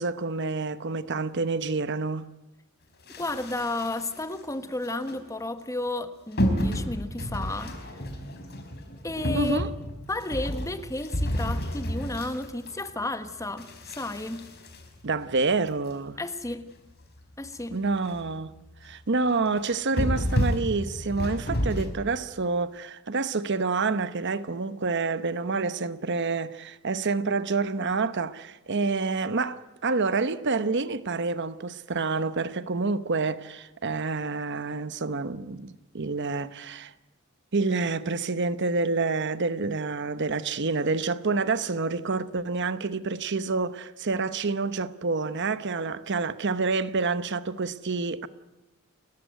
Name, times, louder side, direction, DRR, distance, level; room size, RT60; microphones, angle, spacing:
voice 1, 0.0-2.3 9.3-9.7 15.0-16.2 17.7-18.5 18.8-36.9 37.5-48.3, right 4 dB, 55° right, 0.9 m, -28 dB
sound 1, 3.1-4.3 4.8-5.2 6.4-13.1 13.6-15.7 16.2-16.3 16.5-16.6 17.0-17.1 17.5-17.6 17.9-18.3 18.7-18.9 19.6-21.9, equal, 50° left, 4.5 m, -30 dB
voice 2, 3.2-7.8 9.0-9.6 10.1-14.5 16.2-16.7 17.4-17.8, left 2 dB, 15° left, 1.2 m, -32 dB
30.0 x 14.5 x 9.3 m
head